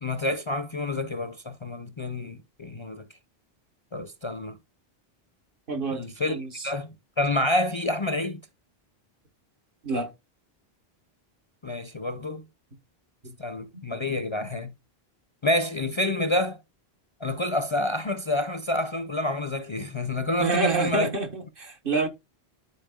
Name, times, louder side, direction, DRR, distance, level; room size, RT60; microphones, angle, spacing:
voice 1, 0.0-3.1 3.9-4.6 5.9-6.4 6.6-6.9 7.2-8.4 11.6-12.4 13.4-14.7 15.4-16.6 17.2-21.1, left 1 dB, 35° left, 0.5 m, -28 dB
voice 2, 5.7-6.5 9.8-10.1 13.2-13.3 13.7-13.8 20.4-22.1, right 4 dB, 60° right, 1.4 m, -28 dB
12.5 x 4.3 x 2.2 m
omnidirectional pair, 1.0 m